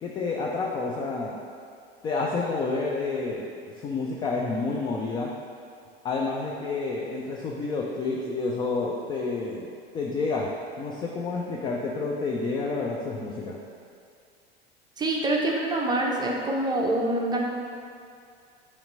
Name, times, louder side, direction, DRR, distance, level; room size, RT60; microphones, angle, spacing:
voice 1, 0.0-1.4 2.0-5.3 6.0-10.5 10.8-13.6, left 3 dB, 15° left, -1 dB, 0.3 m, -29 dB
voice 2, 15.0-17.4, right 2 dB, 15° right, -1 dB, 0.7 m, -25 dB
5.6 x 3.2 x 5.3 m, 2.3 s
figure-of-eight pair, 80°, 32 cm